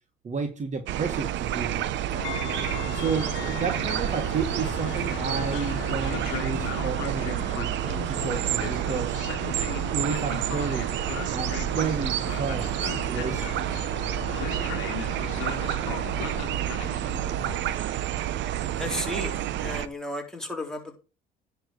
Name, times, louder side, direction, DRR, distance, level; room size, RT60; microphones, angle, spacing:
voice 1, 0.2-1.8 2.9-7.7 8.0-9.2 9.9-10.9 11.3-13.6, right 5 dB, 40° right, 1.5 m, -32 dB
sound 1, 0.9-19.9, right 12 dB, 70° right, 0.8 m, -29 dB
Train, 2.1-17.6, left 12 dB, 85° left, 1.1 m, -37 dB
voice 2, 18.8-21.0, left 1 dB, 5° left, 3.5 m, -34 dB
10.5 x 4.5 x 6.4 m
cardioid pair, 85°, 19 cm